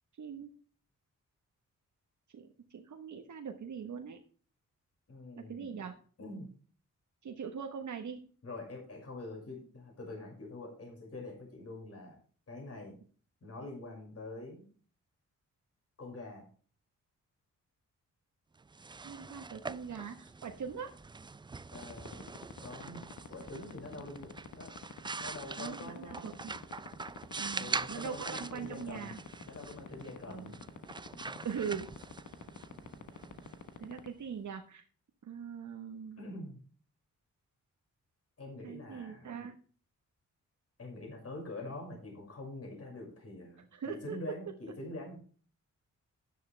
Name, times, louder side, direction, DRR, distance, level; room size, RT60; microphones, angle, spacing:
voice 1, 0.2-0.5 2.3-4.2 5.4-6.0 7.2-8.3 19.0-20.9 25.6-26.5 27.4-29.2 30.3-30.5 31.4-31.9 33.8-34.8 35.2-36.2 38.6-39.6 43.7-44.2, right 7 dB, 65° right, 4 dB, 1.3 m, -41 dB
voice 2, 5.1-5.8 6.2-6.5 8.4-12.2 12.5-13.0 13.4-14.6 16.0-16.5 21.7-22.3 22.6-24.8 25.2-26.4 27.6-29.2 29.4-30.6 31.1-31.5 36.2-36.6 38.4-39.2 40.8-45.2, left 2 dB, 50° left, 0 dB, 5.8 m, -45 dB
sound 1, 18.6-34.3, right 4 dB, 15° right, 0.4 m, -44 dB
sound 2, 21.7-34.1, left 9 dB, 75° left, 1.4 m, -44 dB
11.0 x 10.5 x 3.4 m, 0.42 s
cardioid pair, 80°, 32 cm